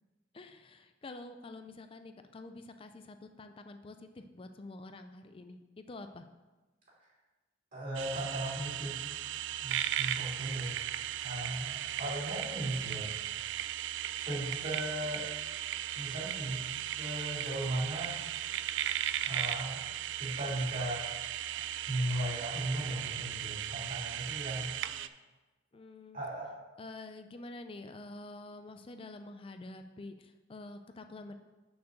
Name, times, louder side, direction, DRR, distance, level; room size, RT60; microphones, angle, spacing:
voice 1, 0.3-6.3 25.7-26.2 26.8-31.4, left 2 dB, 30° left, 8 dB, 0.4 m, -47 dB
voice 2, 7.7-9.1 9.6-10.7 11.2-13.3 14.2-15.2 15.9-18.2 19.2-19.9 20.2-21.0 21.5-21.6 21.9-24.7 26.1-26.6, right 1 dB, 45° right, -6 dB, 2.8 m, -37 dB
sound 1, 7.9-25.1, right 11 dB, 70° right, 0.3 m, -37 dB
6.6 x 4.5 x 6.6 m, 1.2 s
head